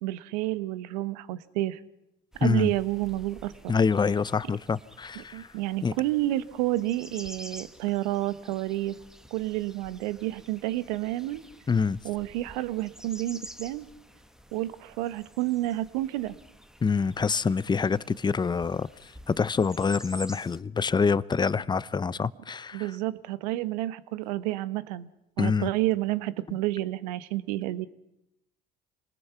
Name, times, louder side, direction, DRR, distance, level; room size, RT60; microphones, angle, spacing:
voice 1, 0.0-1.8 2.4-3.8 5.2-9.0 9.3-11.4 12.0-13.9 14.5-16.4 22.7-25.1 25.4-27.9, right 16 dB, 80° right, 1.0 m, -30 dB
sound 1, 2.3-20.6, equal, 5° right, 1.6 m, -49 dB
voice 2, 2.4-2.7 3.7-5.5 5.8-5.9 11.7-12.0 16.8-22.8 25.4-25.7, left 5 dB, 20° left, 0.7 m, -26 dB
27.0 x 20.0 x 5.8 m
hypercardioid pair, 75°, 21 cm